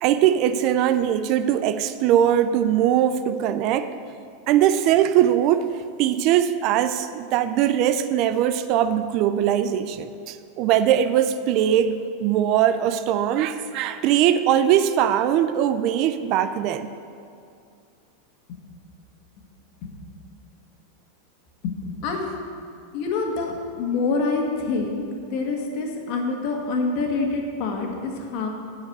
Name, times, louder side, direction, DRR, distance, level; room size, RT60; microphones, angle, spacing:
voice 1, 0.0-3.9 4.5-5.6 6.0-16.9, right 10 dB, 45° right, 11 dB, 0.4 m, -21 dB
voice 2, 21.6-22.3 22.9-25.0 25.3-28.5, left 4 dB, 50° left, 1 dB, 1.6 m, -26 dB
9.8 x 4.8 x 8.0 m, 2.4 s
supercardioid pair, 140°, 0 cm